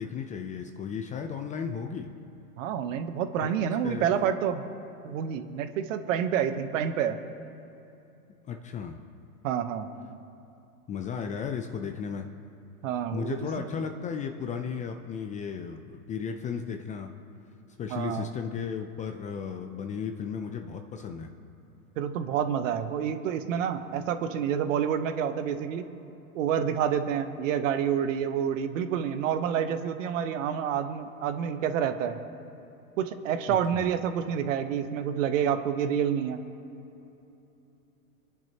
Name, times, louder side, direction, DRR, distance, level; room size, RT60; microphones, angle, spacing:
voice 1, 0.0-2.1 3.4-3.5 3.8-4.1 8.5-9.0 10.9-12.3 13.1-17.1 17.8-21.3 33.5-33.9, left 6 dB, 15° left, 5 dB, 0.5 m, -35 dB
voice 2, 2.6-4.6 5.0-7.2 9.4-9.9 12.8-13.7 17.9-18.3 22.0-25.9 26.3-32.2 33.0-36.4, right 8 dB, 55° right, 9 dB, 1.1 m, -28 dB
25.5 x 10.5 x 2.9 m, 2.8 s
hypercardioid pair, 120°, 45 cm